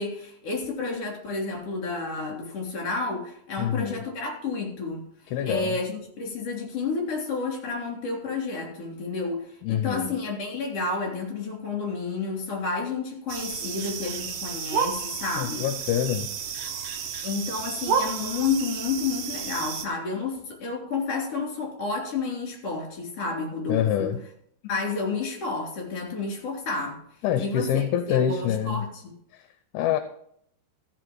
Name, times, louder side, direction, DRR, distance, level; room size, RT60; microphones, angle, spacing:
voice 1, 0.0-5.0 5.4-15.7 17.2-24.1 24.6-27.0 27.4-29.1, left 4 dB, 40° left, 0 dB, 3.9 m, -30 dB
voice 2, 3.6-4.0 5.3-5.8 9.6-10.1 15.4-16.3 23.7-24.2 27.2-28.9 29.3-29.4 29.7-30.0, left 10 dB, 80° left, 10 dB, 2.5 m, -26 dB
sound 1, 13.3-19.9, right 6 dB, 90° right, 1.4 m, -31 dB
14.5 x 5.7 x 6.1 m, 0.70 s
omnidirectional pair, 4.6 m